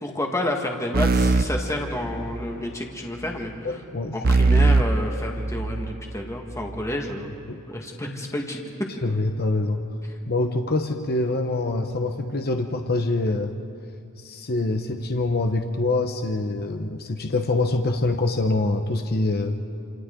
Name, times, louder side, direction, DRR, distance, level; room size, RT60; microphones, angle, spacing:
voice 1, 0.0-3.8 4.1-7.3 7.7-8.7, left 1 dB, 15° left, 1 dB, 1.8 m, -30 dB
sound 1, 0.9-2.6 4.2-6.0, right 3 dB, 45° right, 0.6 m, -21 dB
voice 2, 3.6-4.2 7.5-7.6 9.0-9.8 10.3-13.6 14.2-19.6, left 2 dB, 45° left, 5 dB, 1.0 m, -25 dB
28.5 x 28.0 x 3.8 m, 2.6 s
head